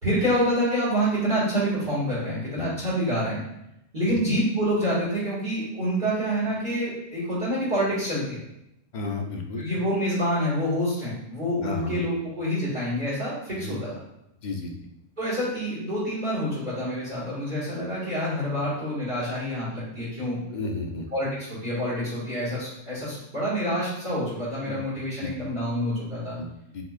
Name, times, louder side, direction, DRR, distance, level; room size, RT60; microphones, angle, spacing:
voice 1, 0.0-3.4 3.9-8.4 9.6-13.9 15.2-20.4 21.1-26.4, equal, 40° right, -9 dB, 1.8 m, -27 dB
voice 2, 8.9-9.6 11.6-12.0 13.6-13.8 14.4-14.7 20.5-21.1 24.7-24.8 25.2-25.3 26.4-26.8, left 3 dB, 50° left, 2 dB, 0.6 m, -32 dB
4.7 x 3.7 x 2.4 m, 0.82 s
omnidirectional pair, 1.3 m